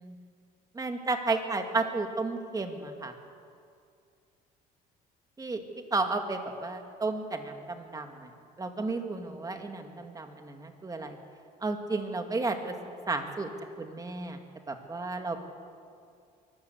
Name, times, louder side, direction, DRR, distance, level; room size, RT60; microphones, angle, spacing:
voice 1, 0.7-3.1 5.4-5.6 5.9-8.3 8.6-11.2 11.6-12.7 13.1-13.5 13.8-14.4 14.7-15.4, right 3 dB, 20° right, 5 dB, 2.2 m, -32 dB
24.0 x 14.0 x 8.0 m, 2.3 s
cardioid pair, 110°, 17 cm